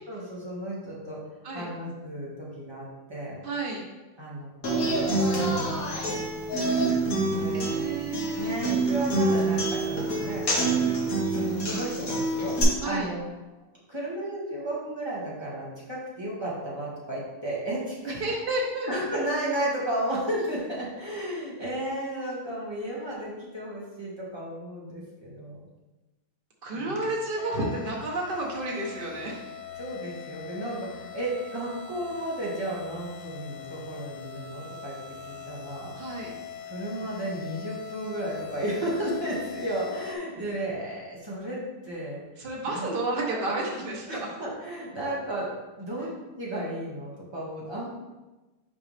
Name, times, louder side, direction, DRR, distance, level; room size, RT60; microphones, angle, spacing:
voice 1, 0.1-1.2 1.5-3.3 4.2-4.5 4.8-6.8 7.3-7.7 8.4-13.2 13.9-18.2 18.9-25.6 26.7-27.0 29.8-35.0 35.2-36.0 36.6-42.2 42.7-42.9 44.1-45.5 45.8-46.1 46.4-47.8, right 1 dB, 15° right, -7 dB, 1.4 m, -33 dB
voice 2, 3.4-3.8 7.5-8.5 12.8-13.1 18.0-18.9 26.6-29.4 35.9-36.3 42.4-44.3, right 2 dB, 65° right, -2 dB, 0.5 m, -31 dB
Human voice / Acoustic guitar, 4.6-12.6, right 2 dB, 45° left, 1.6 m, -26 dB
sound 1, 27.4-40.2, left 8 dB, 80° left, 1.0 m, -42 dB
6.1 x 4.8 x 3.3 m, 1.1 s
omnidirectional pair, 2.4 m